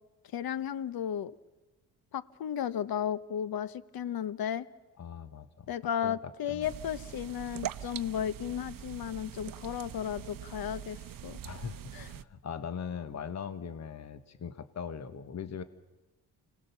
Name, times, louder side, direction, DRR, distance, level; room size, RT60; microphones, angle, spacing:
voice 1, 0.3-1.3 2.1-4.7 5.7-11.4 11.9-12.1, left 9 dB, 60° left, 15 dB, 1.0 m, -34 dB
voice 2, 5.0-5.7 6.0-6.7 11.4-15.6, left 7 dB, 40° left, 10 dB, 1.2 m, -40 dB
sound 1, 6.6-12.2, right 10 dB, 55° right, 0.8 m, -43 dB
27.0 x 18.5 x 6.9 m, 1.1 s
cardioid pair, 70°, 40 cm